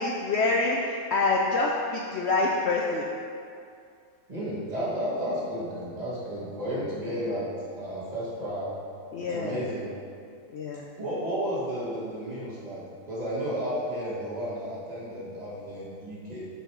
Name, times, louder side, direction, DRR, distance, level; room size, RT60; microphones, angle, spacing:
voice 1, 0.0-3.1 9.1-9.6 10.5-10.8, left 3 dB, 65° left, -1 dB, 0.7 m, -26 dB
voice 2, 4.3-7.5 7.7-8.7 9.2-9.9 11.0-16.5, equal, 30° right, -8 dB, 1.6 m, -32 dB
7.0 x 4.2 x 4.6 m, 2.4 s
omnidirectional pair, 1.4 m